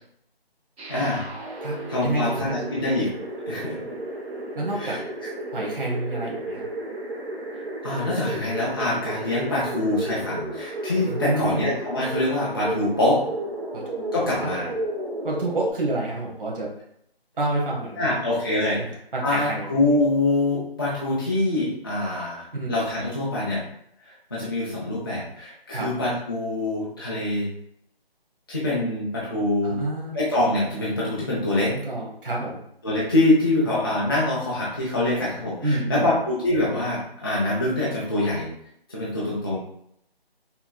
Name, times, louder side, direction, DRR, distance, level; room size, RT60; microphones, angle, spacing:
sound 1, 0.8-15.7, right 1 dB, 85° right, 1.0 m, -33 dB
voice 1, 0.9-1.3 1.9-3.1 3.5-3.8 4.7-5.3 7.8-13.2 14.1-14.7 18.0-23.6 24.0-27.5 28.5-29.8 30.1-31.7 32.8-38.5 38.9-39.6, left 1 dB, 25° left, -7 dB, 0.6 m, -25 dB
voice 2, 2.0-2.6 4.6-5.0 5.5-6.6 11.0-11.7 13.7-13.8 14.4-14.5 15.2-16.7 17.4-18.2 18.7-19.7 22.5-22.8 25.7-25.9 29.6-30.2 31.7-32.6 35.6-36.1, right 2 dB, 60° right, -3 dB, 1.1 m, -28 dB
5.6 x 2.8 x 2.2 m, 0.72 s
figure-of-eight pair, 160°, 31 cm